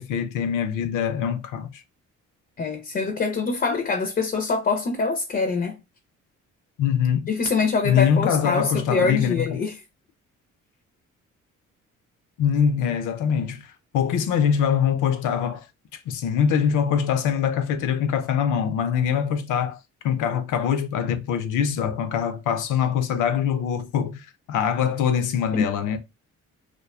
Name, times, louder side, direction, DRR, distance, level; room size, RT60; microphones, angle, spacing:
voice 1, 0.0-1.8 6.8-7.3 7.8-9.6 12.4-15.7 15.9-19.8 20.0-26.0, left 8 dB, 80° left, 0.5 m, -23 dB
voice 2, 2.6-5.8 7.3-9.8 25.5-25.7, left 4 dB, 30° left, 0.4 m, -24 dB
2.4 x 2.2 x 2.3 m
cardioid pair, 90°, 30 cm